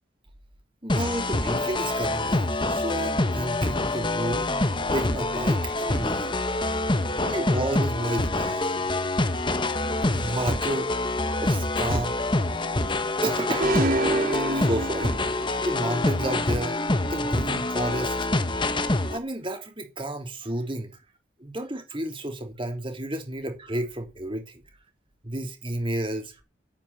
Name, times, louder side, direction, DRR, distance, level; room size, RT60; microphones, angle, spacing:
voice 1, 0.8-4.5 4.9-6.4 7.1-8.8 10.0-10.9 11.4-12.2 13.2-18.2 19.1-21.0 21.4-24.6 25.2-26.4, right 1 dB, 25° right, 3.2 m, -31 dB
sound 1, 0.9-19.2, left 2 dB, 25° left, 1.1 m, -26 dB
sound 2, 13.6-15.6, right 1 dB, 45° right, 2.2 m, -26 dB
10.0 x 8.8 x 8.7 m
head